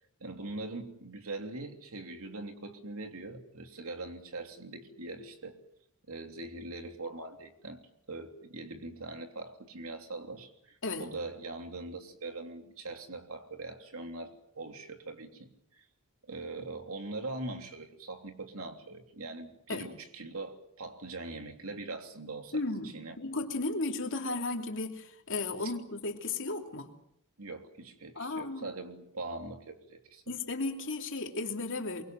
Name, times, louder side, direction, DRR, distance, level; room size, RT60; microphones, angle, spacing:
voice 1, 0.2-5.6 6.1-7.8 8.1-15.9 16.3-23.1 25.6-25.7 27.4-30.2, right 2 dB, 65° right, 5 dB, 3.3 m, -42 dB
voice 2, 22.5-26.9 28.1-28.7 30.3-32.0, left 3 dB, 60° left, 3 dB, 3.1 m, -34 dB
23.5 x 23.5 x 7.7 m, 0.73 s
head